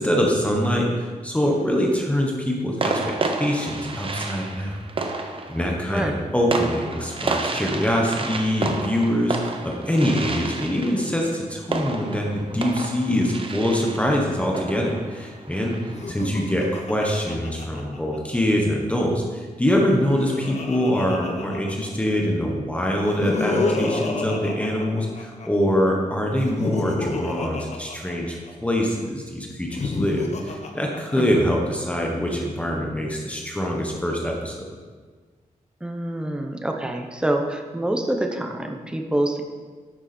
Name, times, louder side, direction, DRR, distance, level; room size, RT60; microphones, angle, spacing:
voice 1, 0.0-4.8 5.5-15.8 16.1-34.7, equal, 10° left, -1 dB, 1.2 m, -24 dB
sound 1, 1.5-1.9 2.8-16.2, right 3 dB, 40° right, 0.8 m, -31 dB
voice 2, 5.8-6.2 16.2-16.3 31.2-31.5 35.8-39.4, right 1 dB, 5° right, 3 dB, 0.8 m, -26 dB
Laughter, 15.8-18.4 19.7-22.1 22.9-25.5 26.3-28.7 29.6-31.5, left 3 dB, 50° left, 1.1 m, -30 dB
10.5 x 7.2 x 4.4 m, 1.4 s
wide cardioid pair, 160°, 14 cm